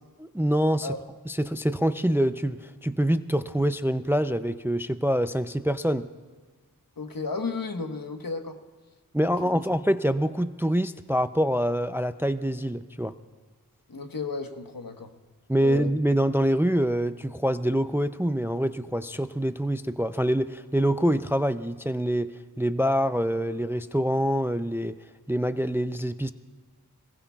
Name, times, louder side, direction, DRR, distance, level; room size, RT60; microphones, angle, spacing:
voice 1, 0.2-0.9 1.3-6.1 9.1-13.1 15.5-25.0 25.3-26.3, equal, 5° right, 11 dB, 0.4 m, -25 dB
voice 2, 7.0-8.6 9.2-9.7 13.9-15.1 15.6-15.9, left 4 dB, 65° left, 5 dB, 1.3 m, -34 dB
26.0 x 19.5 x 2.3 m, 1.5 s
wide cardioid pair, 50°, 37 cm